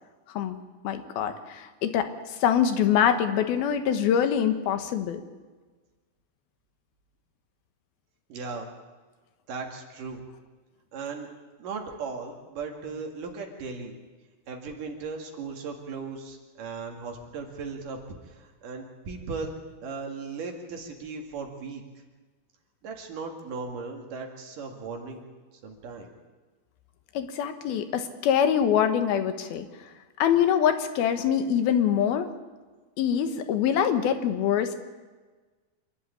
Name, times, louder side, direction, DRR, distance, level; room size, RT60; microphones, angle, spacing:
voice 1, 0.8-5.2 27.1-29.7 30.2-32.3 33.0-34.8, left 9 dB, 85° left, 8 dB, 3.1 m, -24 dB
voice 2, 8.3-8.7 9.5-10.2 10.9-11.3 11.6-14.0 14.5-18.0 18.2-19.6 19.8-21.8 22.8-25.3 25.6-26.1, right 4 dB, 65° right, 2 dB, 3.6 m, -37 dB
26.5 x 11.5 x 8.7 m, 1.3 s
omnidirectional pair, 4.3 m